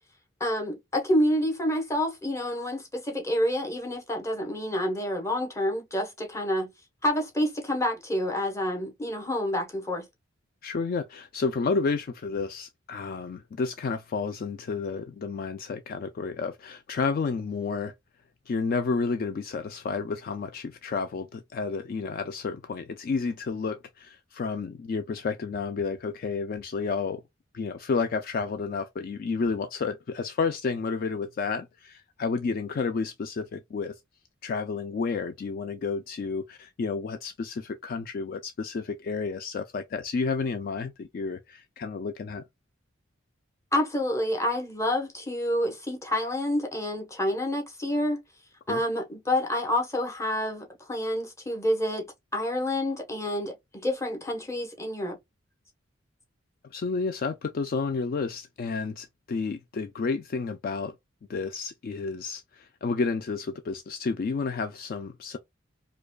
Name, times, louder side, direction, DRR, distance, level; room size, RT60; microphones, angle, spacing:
voice 1, 0.4-6.7 7.0-10.0 43.7-48.2 48.7-52.1 52.3-55.2, left 1 dB, 15° left, 1.0 m, -28 dB
voice 2, 10.6-17.9 18.5-27.2 27.5-33.9 34.4-42.4 48.7-48.8 56.7-60.9 61.3-65.4, left 4 dB, 45° left, 0.3 m, -31 dB
4.8 x 2.2 x 2.3 m
head